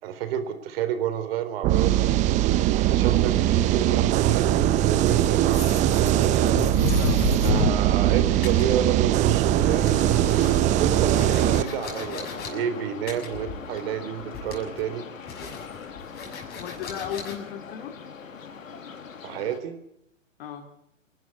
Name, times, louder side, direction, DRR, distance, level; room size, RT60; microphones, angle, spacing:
voice 1, 0.0-2.1 2.7-6.4 7.4-9.9 10.8-15.1 19.2-19.8, right 9 dB, 45° right, 9 dB, 3.9 m, -30 dB
sound 1, 1.6-11.6, right 12 dB, 20° right, 0.7 m, -21 dB
sound 2, 5.1-8.1 8.4-9.3 9.6-12.5 13.1-13.9 14.2-14.8 15.3-17.4, left 4 dB, 25° left, 6.7 m, -31 dB
sound 3, 9.6-19.6, left 6 dB, 75° left, 2.5 m, -40 dB
voice 2, 16.5-18.0 20.4-20.7, left 9 dB, 45° left, 5 dB, 2.6 m, -36 dB
27.5 x 12.0 x 9.8 m, 0.78 s
hypercardioid pair, 125°, 40 cm